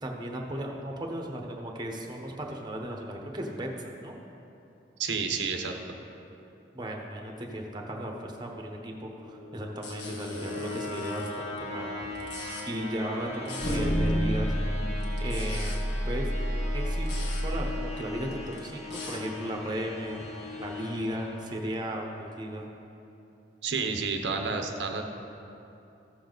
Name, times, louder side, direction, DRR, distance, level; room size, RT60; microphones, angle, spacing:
voice 1, 0.0-4.1 6.7-12.2 12.6-14.5 15.2-16.3 16.7-17.1 17.4-20.3 20.6-22.7, right 1 dB, 25° right, 1 dB, 1.0 m, -36 dB
voice 2, 5.0-5.7 23.6-25.0, right 5 dB, 90° right, 4 dB, 0.8 m, -30 dB
sound 1, 9.0-22.0, left 2 dB, 40° left, 1.1 m, -40 dB
sound 2, 9.8-11.3 12.1-12.6 13.4-13.8 15.0-15.8 17.0-17.4 18.5-19.2, left 4 dB, 75° left, 1.7 m, -42 dB
sound 3, 12.0-12.1 13.6-17.7, equal, 90° left, 1.8 m, -29 dB
14.0 x 6.9 x 4.0 m, 2.8 s
head